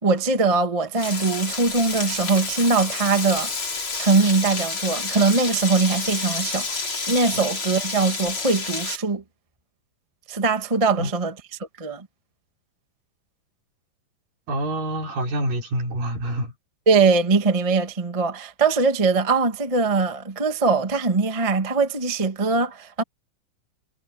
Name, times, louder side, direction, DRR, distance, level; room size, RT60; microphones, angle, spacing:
voice 1, 0.0-3.5 4.0-9.2 10.3-11.3 11.8-12.1 16.9-23.0, right 4 dB, 45° right, 0.4 m, -21 dB
Frying (food), 0.9-9.0, left 4 dB, 35° left, 4.2 m, -29 dB
voice 2, 14.5-16.5, right 1 dB, 70° right, 7.2 m, -26 dB
omnidirectional pair, 4.1 m